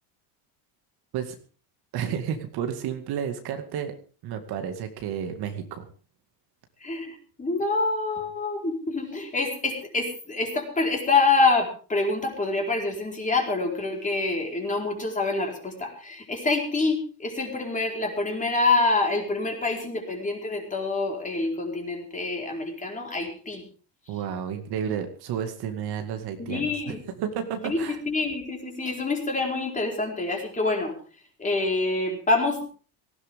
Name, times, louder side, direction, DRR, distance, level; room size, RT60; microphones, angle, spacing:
voice 1, 1.9-3.9 4.2-5.9 24.1-28.0, right 8 dB, 50° right, 6 dB, 2.2 m, -31 dB
voice 2, 6.8-23.6 26.4-27.0 27.6-30.9 31.4-32.6, left 3 dB, 15° left, 1 dB, 4.5 m, -26 dB
18.5 x 16.0 x 3.7 m, 0.39 s
cardioid pair, 140°, 49 cm